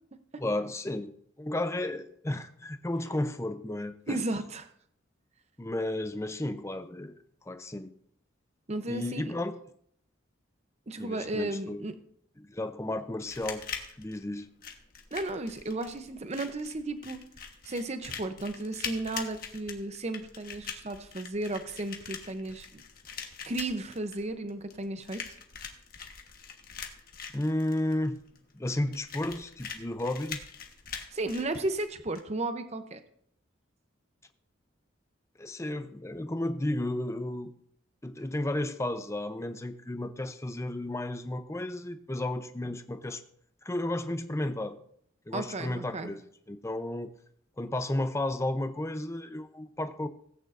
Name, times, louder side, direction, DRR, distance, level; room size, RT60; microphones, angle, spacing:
voice 1, 0.4-1.1 1.4-4.2 5.6-7.9 8.9-9.5 11.0-11.8 12.4-13.6 14.0-14.5 27.3-28.2 28.5-30.4 35.4-37.5 38.0-43.2 43.6-44.8 45.3-46.2 46.5-47.1 47.6-50.1, left 1 dB, 15° left, 9 dB, 0.6 m, -33 dB
voice 2, 4.1-4.7 8.7-9.3 10.9-11.9 15.1-17.2 17.6-22.8 23.5-25.2 31.1-33.0 45.3-46.1, right 2 dB, 35° right, 9 dB, 0.7 m, -34 dB
sound 1, 13.2-32.2, left 6 dB, 50° left, 1.3 m, -43 dB
17.5 x 9.0 x 2.6 m, 0.66 s
head